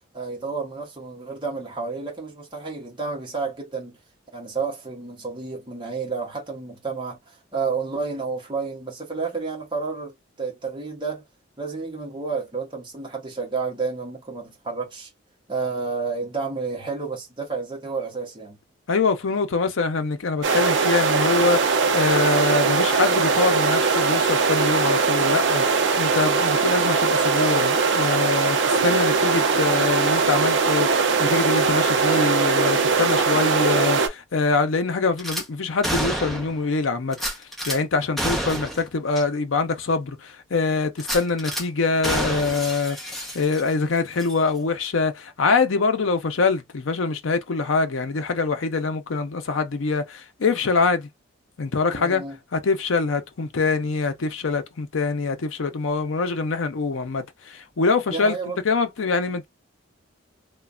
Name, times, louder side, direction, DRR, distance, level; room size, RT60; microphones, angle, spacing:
voice 1, 0.1-4.0 4.3-11.2 11.6-15.1 15.5-18.6 51.9-52.4 58.1-58.6, right 4 dB, 25° right, 0.9 m, -30 dB
voice 2, 18.9-51.1 51.6-52.2 52.5-58.4 58.6-59.5, left 4 dB, 80° left, 0.6 m, -24 dB
sound 1, 20.4-34.1, right 4 dB, 65° right, 0.6 m, -20 dB
Gunshot gunfire / Glass, 35.2-35.4 35.8-36.6 37.1-37.8 38.2-38.8 39.1-39.2 39.7-39.8 41.0-41.6 42.0-43.8 44.2-44.3, equal, ahead, 0.8 m, -29 dB
3.1 x 2.2 x 2.3 m
head